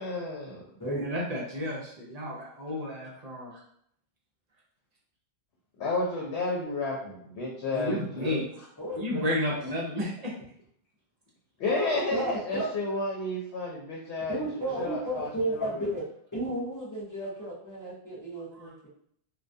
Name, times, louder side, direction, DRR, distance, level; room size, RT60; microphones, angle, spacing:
voice 1, 0.0-0.6 5.8-8.4 11.6-15.3 15.6-15.8, left 2 dB, 80° left, -2 dB, 0.8 m, -31 dB
voice 2, 0.9-3.6 7.7-8.4 9.0-10.3 18.6-18.7, left 1 dB, 50° right, -4 dB, 0.5 m, -32 dB
voice 3, 8.8-9.6 11.6-12.7 14.3-16.0 16.3-18.9, right 1 dB, 25° left, -8 dB, 0.4 m, -33 dB
2.2 x 2.2 x 2.5 m, 0.68 s
omnidirectional pair, 1.1 m